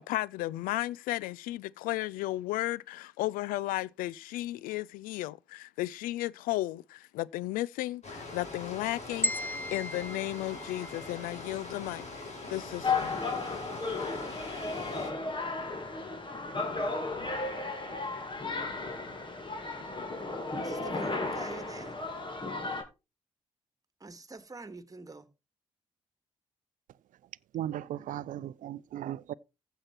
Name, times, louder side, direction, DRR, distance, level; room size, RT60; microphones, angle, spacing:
voice 1, 0.0-13.2, left 16 dB, 75° left, 0.5 m, -34 dB
sound 1, 8.0-15.1, left 2 dB, 50° left, 4.8 m, -43 dB
sound 2, 9.2-11.4, left 1 dB, 10° left, 1.0 m, -36 dB
sound 3, 12.8-22.8, left 3 dB, 35° left, 2.8 m, -34 dB
voice 2, 20.6-22.0 24.0-25.3, right 3 dB, 25° right, 1.9 m, -44 dB
voice 3, 27.5-29.3, right 12 dB, 65° right, 0.5 m, -36 dB
15.0 x 5.7 x 4.5 m
hypercardioid pair, 45°, 14 cm